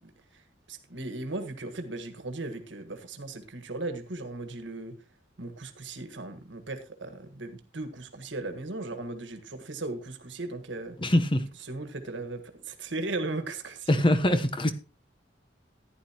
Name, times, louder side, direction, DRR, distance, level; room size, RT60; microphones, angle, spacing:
voice 1, 0.7-5.0 5.4-11.0 11.7-14.0, right 2 dB, 75° right, 8 dB, 1.6 m, -37 dB
voice 2, 11.0-11.5 13.9-14.7, left 1 dB, 30° left, 9 dB, 1.0 m, -23 dB
14.5 x 10.5 x 3.0 m, 0.30 s
head